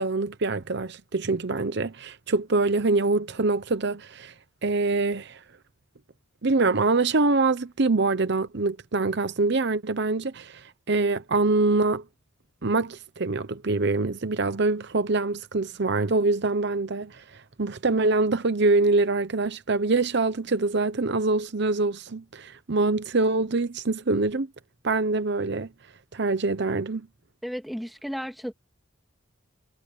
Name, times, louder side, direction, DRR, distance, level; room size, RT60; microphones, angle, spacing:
voice 1, 0.0-4.3 4.6-5.4 6.4-12.0 12.6-17.2 17.6-24.5 24.8-25.7 26.1-27.0, right 3 dB, 60° right, 0.9 m, -24 dB
voice 2, 27.4-28.5, equal, ahead, 2.1 m, -33 dB
head